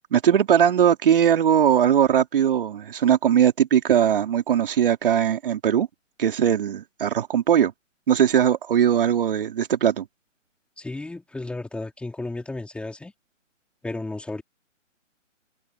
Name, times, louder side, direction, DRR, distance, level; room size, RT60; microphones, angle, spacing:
voice 1, 0.1-5.9 6.2-7.7 8.1-10.0, right 9 dB, 45° right, 3.8 m, -20 dB
voice 2, 10.8-13.1 13.8-14.4, left 2 dB, 5° left, 4.8 m, -33 dB
figure-of-eight pair, 140°, 38 cm